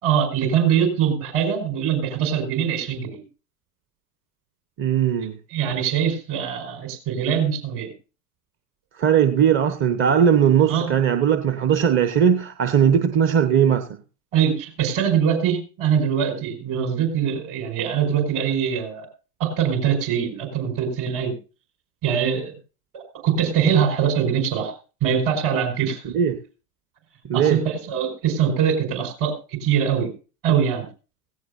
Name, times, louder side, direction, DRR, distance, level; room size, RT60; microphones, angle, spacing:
voice 1, 0.0-3.2 5.5-7.9 10.7-10.9 14.3-19.1 19.4-21.3 22.0-22.5 22.9-24.7 25.0-26.1 27.3-30.1 30.4-30.9, right 8 dB, 50° right, 5.4 m, -23 dB
voice 2, 4.8-5.4 9.0-13.9 26.0-26.4 27.3-27.6, right 8 dB, 30° right, 1.0 m, -19 dB
17.0 x 16.5 x 2.6 m
hypercardioid pair, 95°, 43 cm